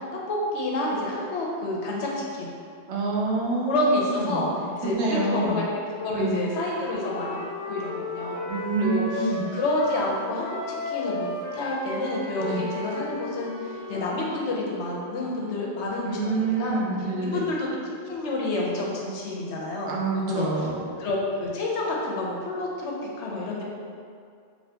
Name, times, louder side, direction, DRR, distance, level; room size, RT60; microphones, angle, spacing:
voice 1, 0.3-2.5 3.7-4.5 4.8-5.6 6.0-8.4 8.8-10.6 10.9-11.3 11.5-16.8 17.2-17.7 18.1-19.9 20.3-20.7 21.0-23.6, left 2 dB, 85° left, -3 dB, 0.9 m, -29 dB
voice 2, 2.9-5.6 6.1-6.4 8.5-9.5 12.4-12.6 16.0-17.4 19.9-20.8, right 3 dB, 85° right, -3 dB, 0.9 m, -27 dB
Wind instrument woodwind instrument, 6.3-10.1 10.4-14.4, left 2 dB, 55° left, 0.7 m, -35 dB
2.7 x 2.7 x 3.3 m, 2.2 s
omnidirectional pair, 1.1 m